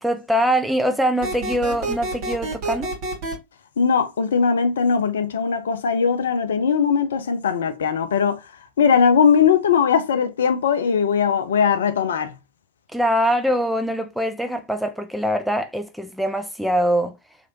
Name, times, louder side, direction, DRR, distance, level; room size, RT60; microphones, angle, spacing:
voice 1, 0.0-2.9 12.9-17.1, equal, ahead, 0.4 m, -23 dB
sound 1, 1.2-3.3, right 2 dB, 40° right, 1.4 m, -28 dB
voice 2, 3.8-8.4 8.8-12.3, left 6 dB, 65° left, 0.4 m, -19 dB
2.9 x 2.4 x 2.8 m
figure-of-eight pair, 90°, 0 cm